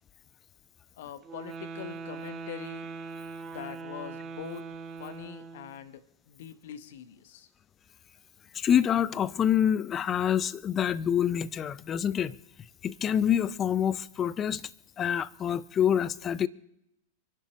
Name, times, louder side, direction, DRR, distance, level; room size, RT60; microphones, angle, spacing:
voice 1, 1.0-2.9 3.5-4.7 5.0-6.0 6.3-7.5, left 10 dB, 55° left, 1.4 m, -43 dB
sound 1, 1.2-5.8, right 4 dB, 25° right, 1.8 m, -41 dB
voice 2, 8.5-12.3 12.8-14.6 15.0-16.5, left 9 dB, 25° left, 0.6 m, -26 dB
28.0 x 11.5 x 3.1 m
figure-of-eight pair, 90°, 0 cm